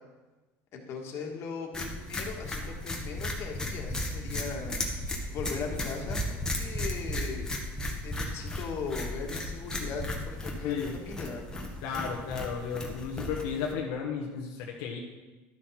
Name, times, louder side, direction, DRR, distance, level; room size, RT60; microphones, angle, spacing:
voice 1, 0.7-4.7 5.3-7.5 8.0-11.4, left 5 dB, 50° left, 1 dB, 1.8 m, -38 dB
sound 1, 1.7-13.7, left 1 dB, 10° left, 1.4 m, -35 dB
voice 2, 11.8-15.0, left 6 dB, 80° left, -1 dB, 1.1 m, -34 dB
12.0 x 6.1 x 4.3 m, 1.2 s
cardioid pair, 130°, 6 cm